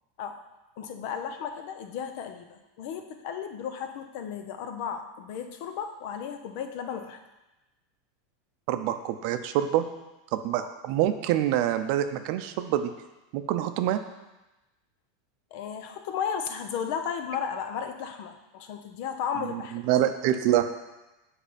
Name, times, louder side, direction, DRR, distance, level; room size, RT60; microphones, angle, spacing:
voice 1, 0.8-7.2 15.5-19.8, left 7 dB, 60° left, 7 dB, 0.8 m, -34 dB
voice 2, 8.7-9.8 10.3-12.9 13.3-14.0 19.4-20.7, right 12 dB, 60° right, 9 dB, 0.6 m, -26 dB
7.5 x 4.4 x 5.1 m, 1.0 s
supercardioid pair, 125°, 0 cm